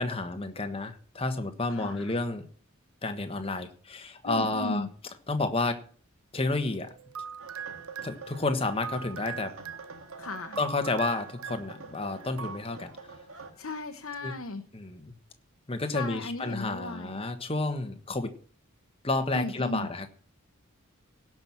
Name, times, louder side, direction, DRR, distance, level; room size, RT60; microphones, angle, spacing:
voice 1, 0.0-2.5 3.0-4.9 5.3-5.8 6.3-6.9 8.0-9.5 10.6-12.9 14.2-14.3 14.7-15.1 15.7-18.3 19.0-20.1, left 2 dB, 25° left, 7 dB, 1.4 m, -30 dB
voice 2, 1.7-2.1 4.2-4.9 10.2-10.6 13.3-14.6 15.9-17.2 19.3-19.9, left 2 dB, 70° left, 4 dB, 1.1 m, -36 dB
sound 1, 6.7-12.6, right 7 dB, 85° right, 1.0 m, -42 dB
sound 2, 7.4-13.5, right 4 dB, 70° right, 1.9 m, -47 dB
17.0 x 6.1 x 7.2 m, 0.43 s
head